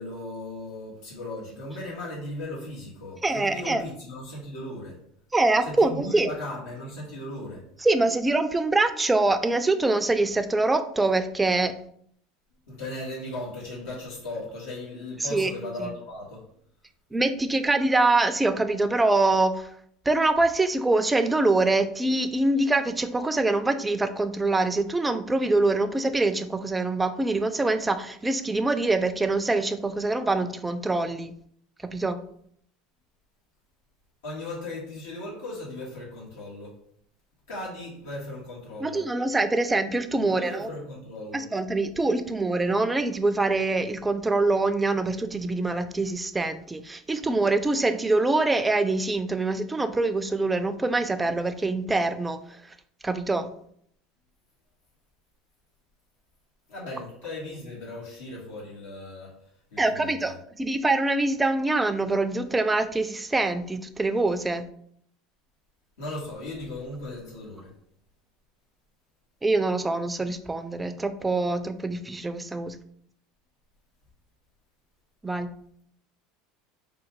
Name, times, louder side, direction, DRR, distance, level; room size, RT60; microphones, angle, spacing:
voice 1, 0.0-5.0 5.6-7.6 12.7-16.4 34.2-36.8 37.5-39.0 40.1-41.4 56.7-59.3 59.7-60.3 66.0-67.7, left 1 dB, 90° left, -6 dB, 1.4 m, -37 dB
voice 2, 3.2-3.8 5.3-6.3 7.8-11.8 15.3-15.5 15.8-15.9 17.1-19.7 20.1-31.4 31.9-32.2 38.8-40.7 41.3-52.4 53.0-53.5 59.8-64.6 69.4-72.8 75.2-75.5, right 2 dB, 10° right, 10 dB, 0.4 m, -24 dB
3.7 x 2.3 x 4.5 m, 0.67 s
supercardioid pair, 115°, 0 cm